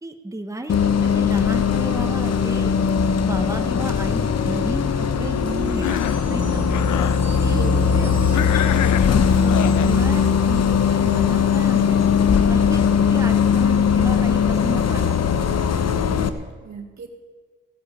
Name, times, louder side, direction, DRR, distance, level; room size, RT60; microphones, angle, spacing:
voice 1, 0.0-2.8 3.2-6.7 7.4-8.9 9.4-12.0 12.5-15.4, right 1 dB, 10° right, 5 dB, 1.3 m, -33 dB
Bus, 0.7-16.3, left 6 dB, 55° left, 1.0 m, -19 dB
Wind chime, 5.3-10.6, right 1 dB, 5° left, 5.2 m, -46 dB
Cough, 5.7-6.3 6.7-7.2 8.3-9.9, left 12 dB, 75° left, 0.6 m, -28 dB
voice 2, 6.4-7.2 7.5-7.9 16.3-17.1, right 5 dB, 65° right, 5 dB, 2.0 m, -37 dB
15.5 x 8.1 x 8.5 m, 1.4 s
supercardioid pair, 60°, 30 cm